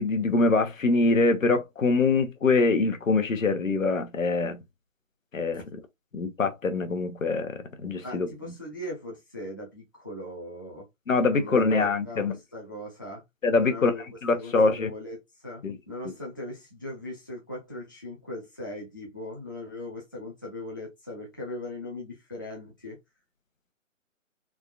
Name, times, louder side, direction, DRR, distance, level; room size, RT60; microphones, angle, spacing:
voice 1, 0.0-4.6 5.3-5.8 6.1-8.3 11.1-12.3 13.4-13.9 14.2-14.9 15.6-15.8, left 3 dB, 80° left, 0.9 m, -24 dB
voice 2, 8.0-10.9 11.3-13.2 13.5-14.0 14.3-23.0, left 1 dB, 15° left, 0.5 m, -39 dB
3.5 x 2.3 x 2.4 m
figure-of-eight pair, 150°, 40 cm